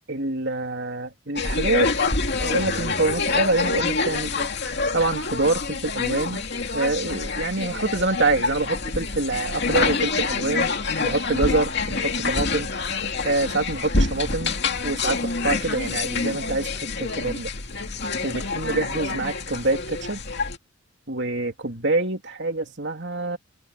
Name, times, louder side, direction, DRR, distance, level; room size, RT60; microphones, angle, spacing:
voice 1, 0.1-1.9 2.4-4.5 4.9-6.4 6.7-10.7 11.0-12.7 13.2-14.5 14.8-17.5 18.2-20.2 21.1-23.4, right 2 dB, 55° right, 3.1 m, -26 dB
sound 1, 1.4-20.6, left 4 dB, 50° left, 2.7 m, -26 dB
head